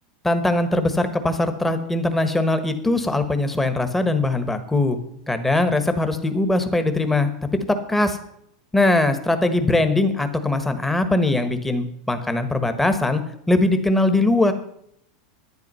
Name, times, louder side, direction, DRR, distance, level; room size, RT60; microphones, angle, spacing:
voice 1, 0.2-5.0 5.3-7.3 7.7-8.2 8.7-13.2 13.5-14.5, left 2 dB, 5° left, 8 dB, 1.2 m, -21 dB
11.0 x 10.0 x 5.5 m, 0.71 s
supercardioid pair, 140°, 3 cm